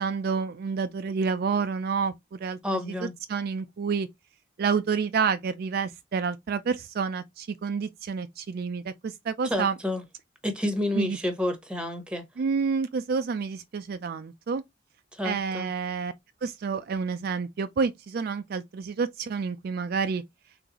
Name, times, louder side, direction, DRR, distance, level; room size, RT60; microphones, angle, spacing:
voice 1, 0.0-2.6 3.3-4.1 4.6-9.8 11.0-11.2 12.4-14.6 15.2-16.1 16.4-20.2, right 5 dB, 55° right, 0.3 m, -29 dB
voice 2, 2.6-3.1 9.4-10.0 10.4-12.2 15.1-15.7, left 1 dB, 5° right, 0.9 m, -29 dB
3.9 x 3.4 x 2.9 m
head